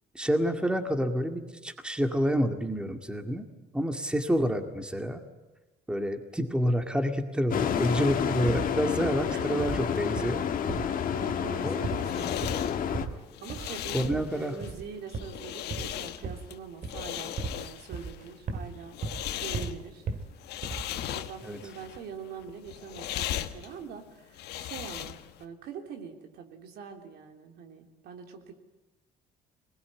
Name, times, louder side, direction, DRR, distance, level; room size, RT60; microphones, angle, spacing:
voice 1, 0.1-3.5 3.7-5.2 5.9-10.5 11.6-11.8 13.9-14.5 21.4-21.6, equal, 5° right, 5 dB, 2.1 m, -28 dB
sound 1, 7.5-13.0, left 8 dB, 55° left, 1.9 m, -29 dB
sound 2, 8.5-8.8 9.0-9.3 9.6-9.9 10.2-11.0 11.3-11.6 11.8-12.1 12.4-12.7 12.9-13.2 13.5-13.8 14.0-14.3 14.6-14.9 15.1-16.6 16.8-17.7 17.9-18.7 19.0-19.3 19.5-20.3 20.6-21.0, right 4 dB, 50° right, 2.3 m, -36 dB
voice 2, 11.1-12.7 13.4-19.0 19.4-20.0 20.9-28.5, right 6 dB, 75° right, 4 dB, 3.3 m, -43 dB
sound 3, 11.6-25.4, left 12 dB, 75° left, 1.3 m, -38 dB
22.5 x 20.5 x 9.8 m, 1.1 s
cardioid pair, 110°, 17 cm